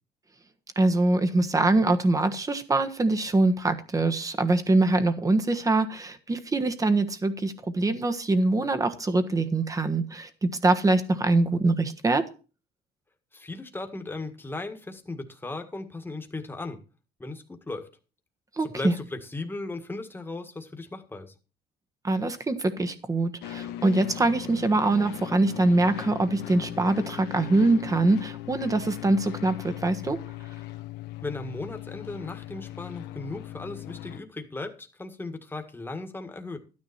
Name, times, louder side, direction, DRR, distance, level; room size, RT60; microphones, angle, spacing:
voice 1, 0.7-12.2 18.6-18.9 22.0-30.2, right 2 dB, 20° right, 9 dB, 1.3 m, -24 dB
voice 2, 13.3-16.8 17.2-17.9 18.6-21.3 31.2-36.6, left 2 dB, 10° left, 5 dB, 1.8 m, -37 dB
sound 1, 23.4-34.2, left 14 dB, 90° left, 0.9 m, -39 dB
12.0 x 9.8 x 4.3 m, 0.34 s
cardioid pair, 110°, 17 cm